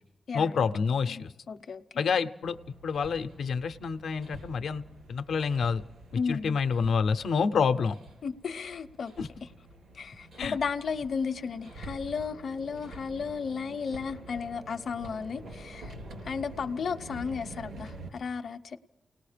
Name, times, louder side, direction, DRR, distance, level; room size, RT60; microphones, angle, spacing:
voice 1, 0.3-1.3 2.0-2.6 2.8-4.8 5.1-5.8 6.3-8.0 9.2-9.3 10.4-10.6, left 5 dB, 90° left, 0.7 m, -28 dB
voice 2, 1.5-1.8 6.1-6.6 8.2-9.1 9.9-15.9 16.2-18.8, left 5 dB, 55° left, 0.7 m, -34 dB
Hammer, 2.4-18.1, right 1 dB, 80° right, 3.7 m, -47 dB
29.5 x 18.5 x 5.1 m
wide cardioid pair, 160°, 0 cm